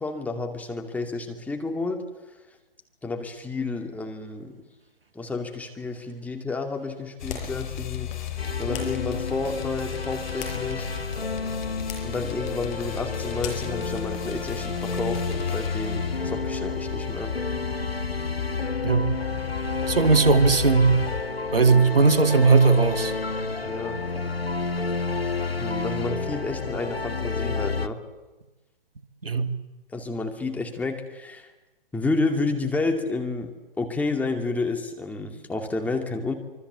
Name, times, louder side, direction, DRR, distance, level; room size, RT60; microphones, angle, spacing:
voice 1, 0.0-2.0 3.0-4.6 5.1-8.1 8.6-10.9 12.0-17.3 23.6-24.0 25.6-28.0 29.9-31.5 31.9-36.3, left 3 dB, 5° left, 3 dB, 2.5 m, -30 dB
sound 1, 7.2-21.2, left 8 dB, 50° left, 3.1 m, -34 dB
sound 2, 7.3-7.6 8.7-9.0 10.1-11.0 11.8-12.2 13.4-13.8, left 6 dB, 35° left, 6.4 m, -38 dB
sound 3, 8.4-27.9, left 4 dB, 85° left, 1.5 m, -31 dB
voice 2, 19.9-21.0 21.5-23.1 29.2-29.5, right 4 dB, 75° right, 9 dB, 2.4 m, -18 dB
26.0 x 24.5 x 8.2 m, 1.1 s
figure-of-eight pair, 125°, 29 cm